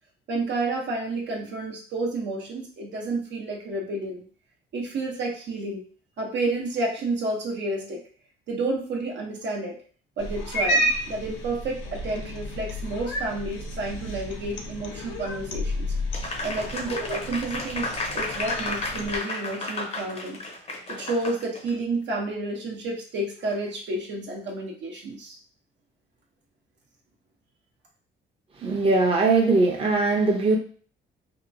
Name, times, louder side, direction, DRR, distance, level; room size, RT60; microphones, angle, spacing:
voice 1, 0.3-4.2 4.7-5.8 6.2-8.0 8.5-9.8 10.2-15.9 16.4-20.4 20.9-25.4, right 2 dB, 65° right, -1 dB, 0.8 m, -30 dB
Cat, 10.2-19.2, equal, 80° left, 0.6 m, -31 dB
Applause, 16.1-21.7, left 2 dB, 30° left, 0.7 m, -33 dB
voice 2, 28.6-30.6, right 3 dB, 30° right, 0 dB, 0.7 m, -20 dB
2.8 x 2.3 x 2.6 m, 0.43 s
cardioid pair, 90°, 20 cm